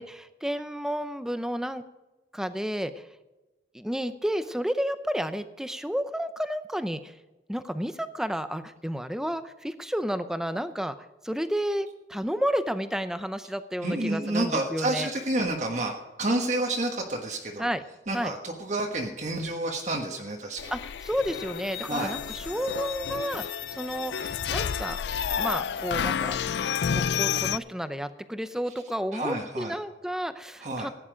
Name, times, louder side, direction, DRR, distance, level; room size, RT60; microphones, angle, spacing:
voice 1, 0.0-1.8 2.3-3.1 3.7-7.1 7.5-10.9 11.2-15.1 17.6-17.8 18.1-18.3 20.7-20.8 21.0-23.4 23.7-25.0 25.4-26.4 26.9-30.9, equal, 5° right, 11 dB, 0.6 m, -31 dB
voice 2, 13.8-15.9 16.2-17.7 18.1-20.7 21.9-22.1 29.1-29.8 30.6-30.9, right 2 dB, 40° right, 1 dB, 1.4 m, -29 dB
sound 1, 20.6-27.6, left 7 dB, 70° left, 0.4 m, -30 dB
16.0 x 10.0 x 5.1 m, 1.1 s
head